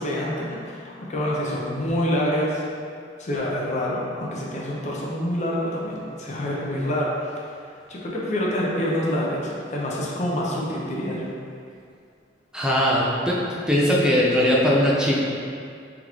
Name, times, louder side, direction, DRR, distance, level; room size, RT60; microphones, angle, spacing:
voice 1, 0.0-2.6 3.2-7.1 7.9-11.3, equal, 40° left, -4 dB, 0.7 m, -26 dB
voice 2, 12.5-13.4 13.7-15.2, equal, 5° right, -5 dB, 0.6 m, -20 dB
3.6 x 3.1 x 3.7 m, 2.3 s
head